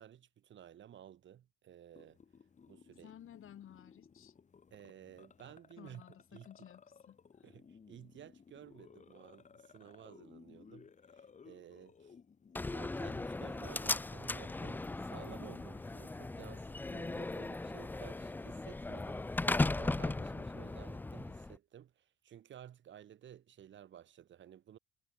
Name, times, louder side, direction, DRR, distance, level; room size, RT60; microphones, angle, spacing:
voice 1, 0.0-2.2 2.7-3.1 4.7-6.0 6.3-6.5 7.4-12.2 12.7-19.3 19.7-24.8, right 10 dB, 40° right, 1.6 m, -54 dB
sound 1, 1.9-19.2, left 6 dB, 25° left, 2.5 m, -60 dB
voice 2, 3.0-4.4 5.8-7.5, left 10 dB, 45° left, 3.5 m, -55 dB
Slam, 12.5-21.5, left 2 dB, 5° left, 0.4 m, -37 dB
cardioid pair, 140°, 29 cm